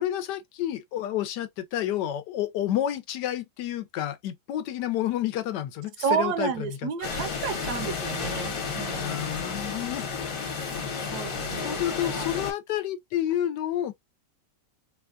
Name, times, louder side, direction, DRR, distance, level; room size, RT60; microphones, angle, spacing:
voice 1, 0.0-6.7 7.7-8.0 8.9-10.1 11.6-13.9, left 11 dB, 80° left, 1.3 m, -30 dB
voice 2, 6.0-9.5 10.5-12.3, right 7 dB, 75° right, 1.1 m, -32 dB
sound 1, 7.0-12.5, left 5 dB, 55° left, 1.4 m, -32 dB
4.0 x 2.2 x 2.4 m
omnidirectional pair, 1.8 m